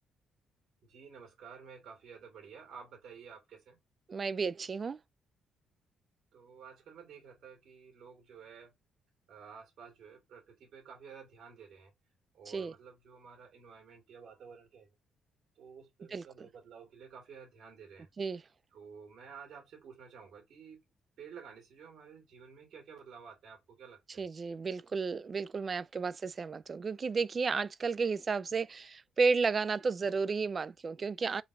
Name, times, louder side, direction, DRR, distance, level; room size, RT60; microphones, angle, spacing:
voice 1, 0.8-3.8 6.3-8.7 9.3-11.9 12.3-14.9 15.6-18.1 18.7-20.8 21.2-24.2, right 6 dB, 70° right, 1.8 m, -52 dB
voice 2, 4.1-5.0 12.5-12.7 16.1-16.2 18.2-18.4 24.2-31.4, right 4 dB, 40° right, 0.3 m, -32 dB
3.9 x 2.5 x 4.4 m
cardioid pair, 90°, 0 cm